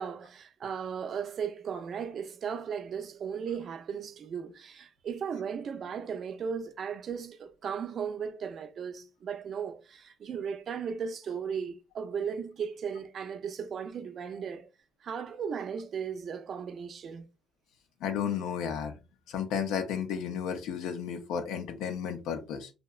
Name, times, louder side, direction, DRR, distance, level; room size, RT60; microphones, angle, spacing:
voice 1, 0.0-14.7 15.0-17.3, right 7 dB, 55° right, 0.3 m, -36 dB
voice 2, 18.0-19.0 19.3-22.7, left 7 dB, 85° left, 0.4 m, -33 dB
2.7 x 2.1 x 2.3 m
supercardioid pair, 80°, 0 cm